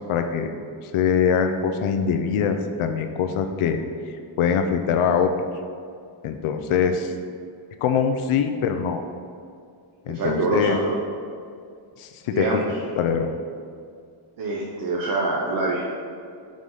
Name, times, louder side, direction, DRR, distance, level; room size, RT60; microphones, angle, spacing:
voice 1, 0.1-0.5 0.8-3.8 4.0-5.3 6.2-7.1 7.8-9.0 10.1-10.8 12.0-12.4 13.0-13.3, left 7 dB, 80° left, 6 dB, 0.6 m, -23 dB
voice 2, 10.1-11.0 12.3-12.7 14.4-15.8, right 2 dB, 45° right, -2 dB, 0.7 m, -25 dB
4.9 x 3.8 x 5.5 m, 2.3 s
wide cardioid pair, 130°, 49 cm